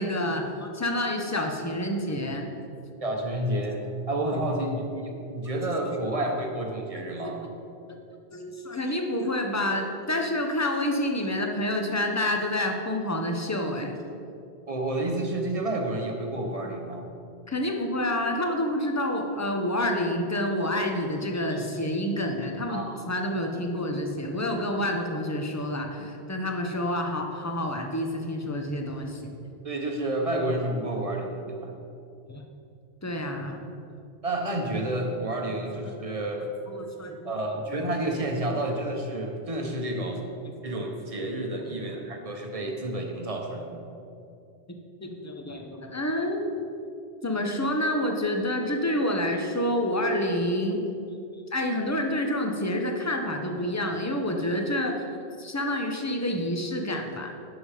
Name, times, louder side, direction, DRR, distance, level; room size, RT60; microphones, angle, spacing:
voice 1, 0.0-2.5 5.9-6.3 6.9-7.3 7.9-8.0 8.3-13.9 17.5-29.4 32.3-32.4 33.0-33.7 35.8-35.9 36.7-37.4 41.2-41.6 42.6-42.7 45.0-46.6 47.2-50.8 51.5-54.9 55.4-57.3, left 1 dB, 15° left, 3 dB, 0.8 m, -28 dB
voice 2, 3.0-3.8 4.1-7.4 14.7-17.0 22.7-22.9 29.6-31.7 34.2-36.4 37.2-40.2 40.6-43.8, right 1 dB, 35° right, 2 dB, 1.1 m, -30 dB
11.0 x 5.4 x 4.9 m, 2.6 s
omnidirectional pair, 1.1 m